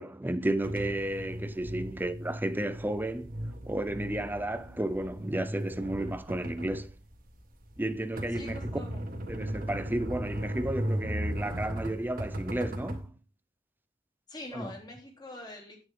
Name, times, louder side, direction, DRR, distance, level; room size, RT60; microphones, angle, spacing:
voice 1, 0.0-3.3 3.6-6.9 7.8-8.7 9.3-13.1 14.5-14.7, right 1 dB, 10° right, 0.7 m, -32 dB
sound 1, 0.6-13.0, equal, 50° right, 1.9 m, -37 dB
voice 2, 8.3-9.1 14.3-15.8, left 1 dB, 20° left, 3.2 m, -44 dB
9.6 x 9.1 x 3.8 m
head